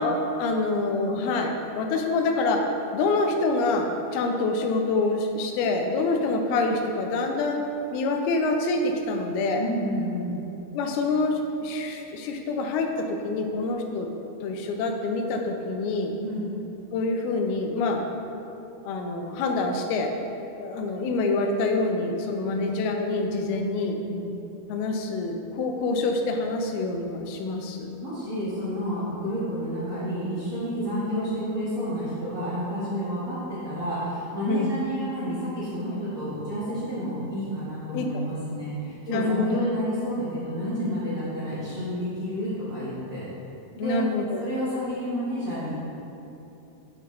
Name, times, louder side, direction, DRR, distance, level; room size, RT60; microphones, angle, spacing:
voice 1, 0.0-2.7 2.9-7.6 7.9-9.6 10.7-14.1 14.4-16.2 16.9-18.0 18.8-20.1 20.6-23.9 24.7-27.9 30.8-31.0 34.5-34.7 37.9-38.1 39.1-39.6 43.8-44.4, left 3 dB, 85° left, 4 dB, 2.4 m, -26 dB
voice 2, 9.5-10.3 16.2-16.5 22.4-22.6 23.4-23.6 24.1-24.3 28.0-43.2 43.7-44.0 44.4-45.7, equal, 75° right, -12 dB, 1.2 m, -30 dB
9.1 x 3.6 x 3.1 m, 2.9 s
omnidirectional pair, 4.5 m